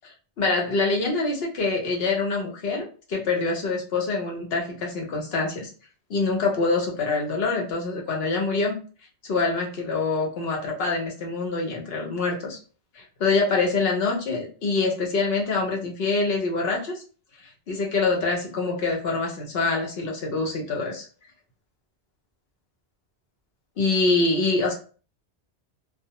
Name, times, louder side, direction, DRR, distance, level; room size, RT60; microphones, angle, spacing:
voice 1, 0.4-5.7 6.1-8.8 9.2-12.6 12.9-17.0 17.7-21.1 23.8-24.7, left 3 dB, 65° left, 1 dB, 0.8 m, -25 dB
2.3 x 2.0 x 2.8 m, 0.38 s
omnidirectional pair, 1.1 m